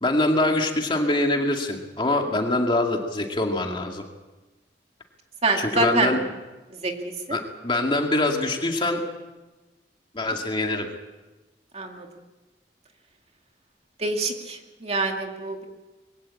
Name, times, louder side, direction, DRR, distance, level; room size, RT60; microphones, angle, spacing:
voice 1, 0.0-4.0 5.5-6.2 7.3-9.0 10.1-10.9, left 2 dB, 25° left, 2 dB, 2.3 m, -24 dB
voice 2, 5.4-6.1 6.8-6.9 7.3-7.4 11.7-12.1 14.0-15.7, right 3 dB, 35° right, 3 dB, 2.3 m, -25 dB
22.5 x 16.5 x 8.5 m, 1.2 s
head